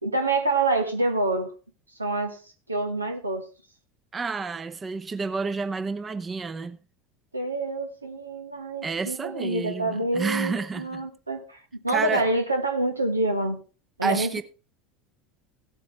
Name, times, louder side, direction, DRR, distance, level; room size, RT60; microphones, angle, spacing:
voice 1, 0.0-1.5 2.0-2.4 2.7-3.4 7.3-13.6 14.0-14.4, right 2 dB, 85° right, 1.5 m, -27 dB
voice 2, 4.1-6.8 8.8-11.1 11.9-12.3 14.0-14.4, right 4 dB, 25° right, 0.8 m, -30 dB
16.5 x 8.3 x 3.3 m
figure-of-eight pair, 75°, 0 cm